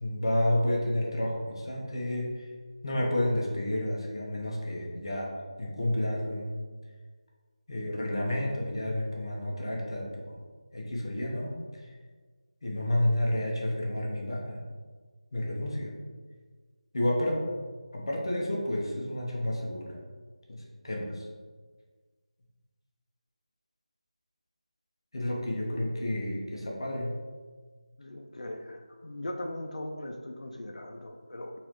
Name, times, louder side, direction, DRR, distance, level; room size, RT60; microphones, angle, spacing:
voice 1, 0.0-2.5 2.8-5.3 5.6-6.5 7.7-10.3 10.7-11.5 11.8-11.9 12.6-14.6 15.3-16.0 16.9-17.4 17.9-20.0 20.5-21.3 25.1-27.2, left 1 dB, 45° left, -2 dB, 0.7 m, -30 dB
voice 2, 28.0-31.5, left 1 dB, 75° left, 3 dB, 0.4 m, -39 dB
4.0 x 2.5 x 3.0 m, 1.5 s
figure-of-eight pair, 175°, 4 cm